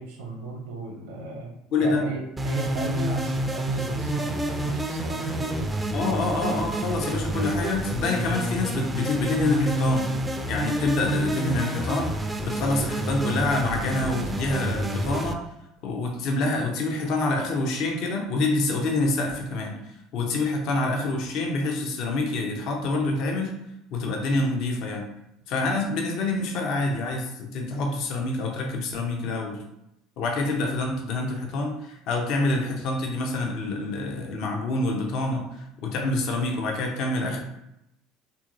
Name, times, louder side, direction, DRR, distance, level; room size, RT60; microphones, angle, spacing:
voice 1, 0.0-1.5 1.8-5.7, right 3 dB, 75° right, 0 dB, 0.7 m, -35 dB
voice 2, 1.7-2.0 5.9-10.1 10.5-15.4 15.8-19.8 20.1-23.5 23.9-25.0 25.5-29.6 30.2-37.4, left 2 dB, 60° left, 1 dB, 0.6 m, -26 dB
sound 1, 2.4-15.3, right 1 dB, 15° right, 0.3 m, -28 dB
2.8 x 2.6 x 2.5 m, 0.85 s
hypercardioid pair, 70°, 0 cm